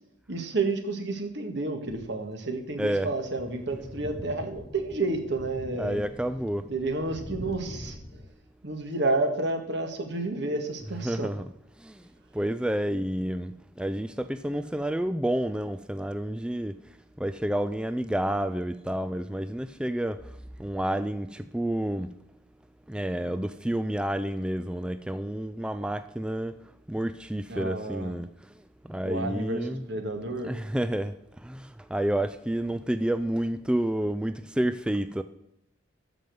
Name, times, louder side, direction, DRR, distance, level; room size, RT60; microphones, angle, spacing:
voice 1, 0.3-6.0 6.7-8.2 8.6-11.3 27.5-28.2 29.0-30.5, right 2 dB, 65° right, 1.9 m, -30 dB
sound 1, 1.9-3.0 3.4-8.3, left 1 dB, 20° left, 0.8 m, -43 dB
voice 2, 5.8-6.7 11.0-11.4 11.8-12.0 12.3-16.8 17.2-20.2 20.6-22.1 22.9-26.5 26.9-28.3 28.8-29.8 30.4-35.2, right 1 dB, 5° right, 0.3 m, -29 dB
13.0 x 5.3 x 7.8 m
head